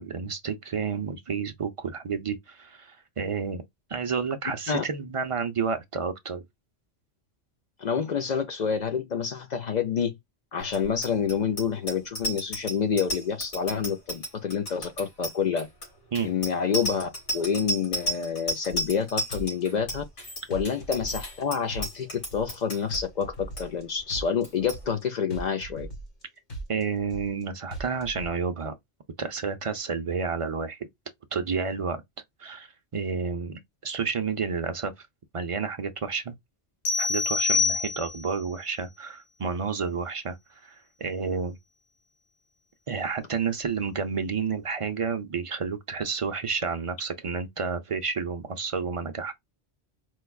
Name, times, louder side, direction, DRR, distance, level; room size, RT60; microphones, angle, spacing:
voice 1, 0.0-3.6 3.9-6.4 16.1-16.3 26.7-28.8 29.2-30.9 31.3-32.0 32.4-32.7 32.9-35.1 35.3-36.3 37.0-40.4 40.6-41.6 42.9-49.4, right 5 dB, 50° right, 0.4 m, -30 dB
voice 2, 7.8-10.2 10.5-15.7 16.2-20.0 20.5-25.9, left 6 dB, 55° left, 0.5 m, -28 dB
Bicycle bell, 10.7-23.0 23.3-23.6 23.9-24.2 24.4-24.8, right 1 dB, 90° left, 3.0 m, -33 dB
sound 1, 18.7-19.0 19.3-20.2 20.5-21.4 21.7-22.6 22.9-23.8 24.1-25.0 25.3-26.2 26.5-27.4 27.7-28.3, right 2 dB, 40° left, 1.2 m, -39 dB
sound 2, 36.8-38.4, left 4 dB, 75° left, 1.2 m, -26 dB
4.6 x 2.2 x 2.2 m
omnidirectional pair, 1.2 m